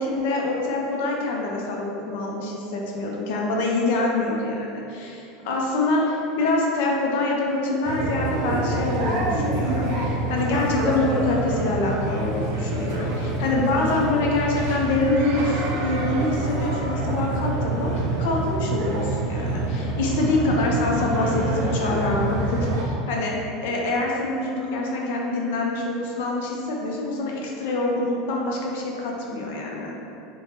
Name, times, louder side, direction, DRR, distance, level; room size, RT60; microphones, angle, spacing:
voice 1, 0.0-23.3 23.6-29.9, left 2 dB, 75° left, -2 dB, 0.5 m, -25 dB
sound 1, 7.8-22.8, right 2 dB, 75° right, 0.5 m, -26 dB
2.7 x 2.1 x 3.3 m, 2.7 s
supercardioid pair, 145°, 0 cm